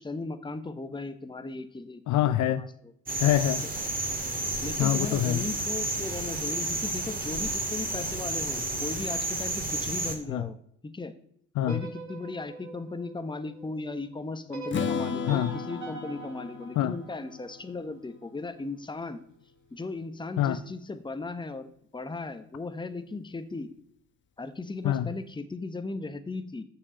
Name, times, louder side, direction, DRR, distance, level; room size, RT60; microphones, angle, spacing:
voice 1, 0.0-2.0 4.6-10.6 10.8-11.1 11.6-19.2 19.7-23.7 24.4-26.6, left 3 dB, 15° left, 9 dB, 1.1 m, -37 dB
voice 2, 2.1-2.6 3.2-3.6 4.8-5.4 10.3-10.5 11.6-11.8 15.3-15.5 16.8-17.0 20.4-20.6 24.8-25.1, left 12 dB, 60° left, 11 dB, 0.6 m, -25 dB
sound 1, 3.1-10.1, right 2 dB, 25° right, 2.4 m, -31 dB
sound 2, 11.6-13.8 14.5-17.6, right 5 dB, 55° right, 3.2 m, -44 dB
Strum, 14.7-18.6, left 6 dB, 35° left, 1.1 m, -35 dB
7.2 x 7.1 x 6.7 m, 0.67 s
supercardioid pair, 75°, 34 cm